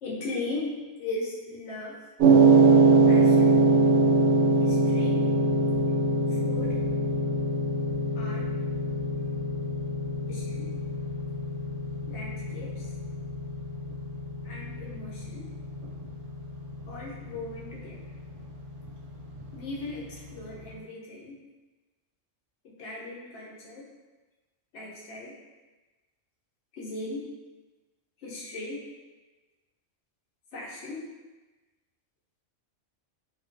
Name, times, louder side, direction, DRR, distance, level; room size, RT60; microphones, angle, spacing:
voice 1, 0.0-2.0 3.1-3.6 4.6-5.3 6.4-6.8 8.1-8.5 10.3-10.7 12.1-12.9 14.4-15.5 16.9-18.0 19.5-21.4 22.6-23.9 24.7-25.3 26.8-27.3 28.2-28.8 30.5-31.1, left 2 dB, 70° left, -4 dB, 0.9 m, -38 dB
sound 1, 2.2-20.5, right 3 dB, 75° right, 0.9 m, -24 dB
2.4 x 2.2 x 2.5 m, 1.2 s
omnidirectional pair, 1.3 m